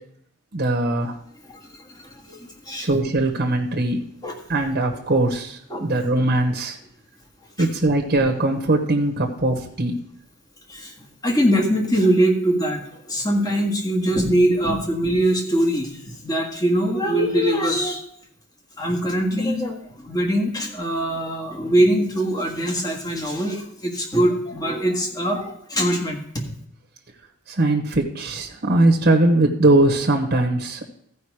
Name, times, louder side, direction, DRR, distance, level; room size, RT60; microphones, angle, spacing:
voice 1, 0.5-1.2 2.8-4.0 4.5-6.8 7.6-10.0 27.5-30.9, right 2 dB, 45° right, 2 dB, 1.2 m, -20 dB
voice 2, 1.5-2.9 4.2-4.4 5.7-6.0 7.6-7.7 10.7-18.0 18.8-26.5, right 1 dB, 20° left, -1 dB, 1.7 m, -22 dB
14.5 x 5.3 x 4.8 m, 0.71 s
head